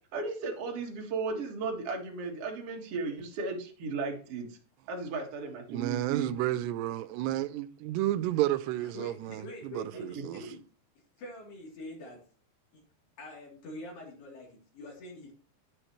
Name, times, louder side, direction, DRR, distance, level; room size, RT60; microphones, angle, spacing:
voice 1, 0.1-4.6 4.9-6.3 9.9-10.5, right 4 dB, 45° right, 2.1 m, -35 dB
voice 2, 5.7-10.4, right 14 dB, 80° right, 2.8 m, -31 dB
voice 3, 8.8-10.6 11.2-12.2 13.2-15.3, left 1 dB, 70° left, 5.2 m, -44 dB
10.0 x 9.9 x 3.1 m
omnidirectional pair, 4.9 m